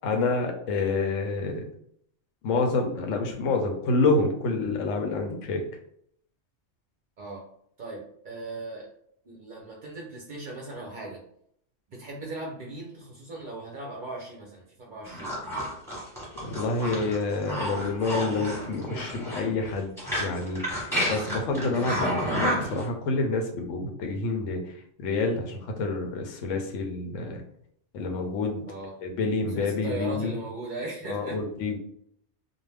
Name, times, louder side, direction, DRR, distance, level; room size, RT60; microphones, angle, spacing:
voice 1, 0.0-1.6 2.4-5.6 16.4-19.9 20.2-24.6 25.0-27.4 27.9-28.6 29.0-30.3 31.1-31.8, left 3 dB, 85° left, 3 dB, 0.9 m, -28 dB
voice 2, 7.8-8.9 9.2-11.2 11.9-15.3 28.7-28.9 29.5-31.4, right 2 dB, 55° right, -2 dB, 0.6 m, -38 dB
sound 1, 15.0-22.8, equal, ahead, 0.9 m, -31 dB
2.4 x 2.1 x 3.2 m, 0.69 s
omnidirectional pair, 1.3 m